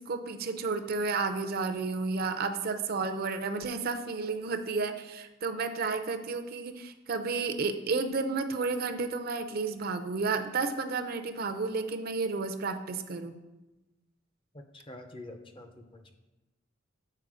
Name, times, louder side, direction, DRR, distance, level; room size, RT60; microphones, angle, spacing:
voice 1, 0.0-13.4, right 4 dB, 50° right, 7 dB, 0.5 m, -32 dB
voice 2, 14.7-16.2, left 1 dB, 25° left, 6 dB, 0.6 m, -47 dB
7.7 x 4.4 x 4.8 m, 1.1 s
head